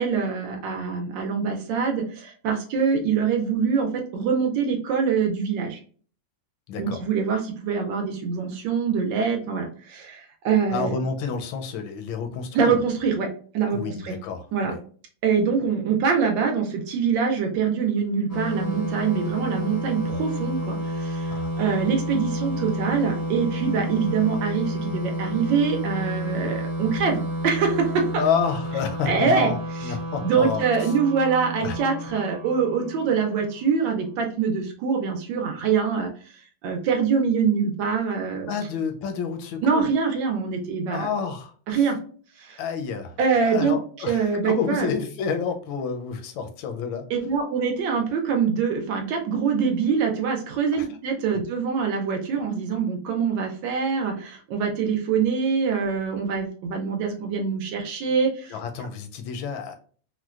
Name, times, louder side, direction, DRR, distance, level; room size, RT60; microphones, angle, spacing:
voice 1, 0.0-5.8 6.8-10.9 12.5-13.3 13.5-14.1 14.5-14.7 15.2-28.1 29.1-29.5 30.2-36.1 36.6-38.5 39.6-41.1 41.7-42.0 42.4-42.6 43.2-43.8 44.1-44.9 47.1-58.5, right 6 dB, 75° right, 3 dB, 1.3 m, -24 dB
voice 2, 6.7-7.0 10.7-12.8 13.7-14.8 21.3-21.5 28.2-30.9 31.6-31.8 38.5-39.9 40.9-41.9 42.6-47.1 50.7-50.9 58.5-59.7, left 6 dB, 85° left, 6 dB, 1.4 m, -29 dB
sound 1, 18.3-33.7, equal, 30° left, 0.3 m, -30 dB
4.4 x 2.2 x 2.3 m, 0.43 s
omnidirectional pair, 2.1 m